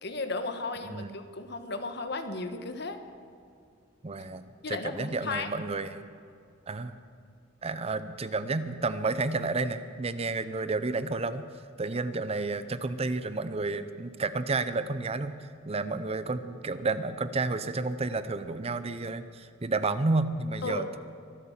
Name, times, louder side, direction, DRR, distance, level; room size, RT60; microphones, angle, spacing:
voice 1, 0.0-3.0 4.6-5.5 20.6-20.8, left 3 dB, 60° left, 8 dB, 1.4 m, -34 dB
voice 2, 0.9-1.2 4.0-6.0 6.7-7.0 7.6-11.5 11.8-15.3 15.6-21.0, right 3 dB, 35° right, 13 dB, 0.6 m, -31 dB
24.0 x 8.3 x 7.3 m, 2.4 s
head